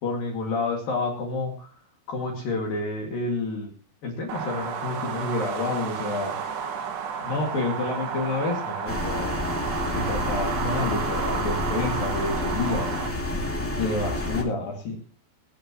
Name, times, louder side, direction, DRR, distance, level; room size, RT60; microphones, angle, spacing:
voice 1, 0.0-1.7 2.1-3.7 4.0-6.4 7.2-9.4 9.9-12.9 13.8-15.0, left 3 dB, 55° left, 1 dB, 3.7 m, -29 dB
sound 1, 4.3-13.1, right 6 dB, 70° right, 3.9 m, -32 dB
sound 2, 8.8-14.4, left 1 dB, 10° left, 0.8 m, -29 dB
25.5 x 10.0 x 3.0 m, 0.40 s
omnidirectional pair, 5.1 m